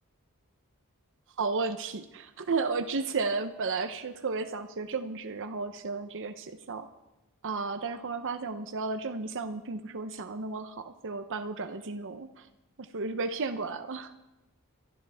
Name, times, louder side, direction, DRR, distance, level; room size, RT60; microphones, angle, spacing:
voice 1, 1.4-6.9 7.4-12.5 12.9-14.1, right 4 dB, 60° right, 8 dB, 0.8 m, -33 dB
22.5 x 12.5 x 3.5 m, 0.96 s
head